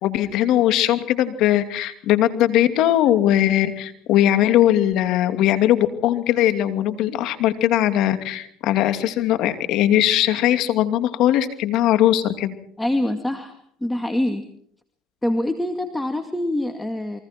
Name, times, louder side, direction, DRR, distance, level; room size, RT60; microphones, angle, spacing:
voice 1, 0.0-12.5, left 12 dB, 65° left, 9 dB, 2.6 m, -19 dB
voice 2, 12.8-14.4 15.2-17.2, left 1 dB, 10° left, 6 dB, 2.3 m, -25 dB
29.5 x 23.5 x 4.5 m, 0.63 s
supercardioid pair, 95°, 0 cm